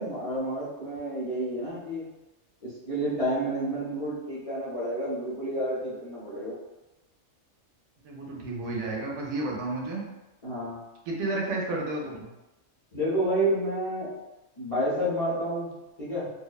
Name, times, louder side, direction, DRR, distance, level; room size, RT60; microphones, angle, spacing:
voice 1, 0.0-2.0 2.6-6.5 10.4-10.8 12.9-14.1 14.6-15.7 16.0-16.3, right 1 dB, 40° left, -9 dB, 0.6 m, -29 dB
voice 2, 8.0-10.1 11.1-12.3, right 2 dB, 70° right, -2 dB, 0.9 m, -31 dB
2.6 x 2.1 x 2.2 m, 1.0 s
omnidirectional pair, 1.3 m